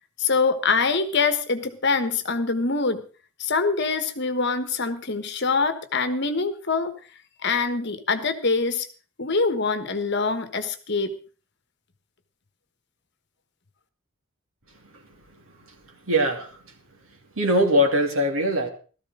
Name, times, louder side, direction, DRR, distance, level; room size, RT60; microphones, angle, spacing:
voice 1, 0.2-3.0 3.4-6.9 7.4-8.9 9.2-11.1, left 4 dB, 55° left, 9 dB, 1.3 m, -24 dB
voice 2, 15.3-15.7 16.1-16.7 17.4-18.7, equal, 75° right, 2 dB, 2.8 m, -23 dB
16.0 x 13.5 x 3.8 m, 0.37 s
head